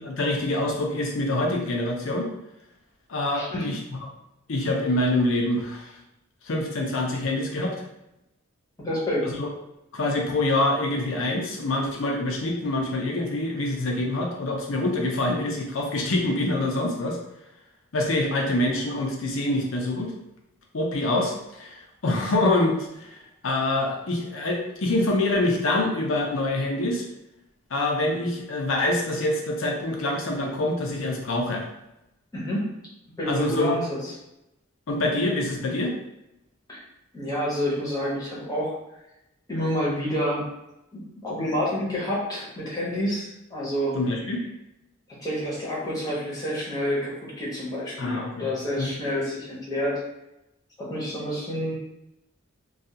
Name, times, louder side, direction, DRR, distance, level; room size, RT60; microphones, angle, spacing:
voice 1, 0.1-2.3 3.1-3.8 4.5-5.9 6.4-7.8 9.3-9.5 9.9-17.2 17.9-20.1 20.7-27.1 27.7-31.6 33.3-33.7 34.9-35.9 43.9-44.4 48.0-48.5 48.8-48.9, left 2 dB, 70° left, 1 dB, 0.5 m, -25 dB
voice 2, 3.3-3.7 8.8-9.3 32.3-32.7 33.2-34.0 36.7-36.8 37.1-38.7 39.5-40.4 40.9-43.9 45.2-50.0 50.8-51.7, equal, 20° left, -6 dB, 0.8 m, -28 dB
2.3 x 2.3 x 2.7 m, 0.90 s
head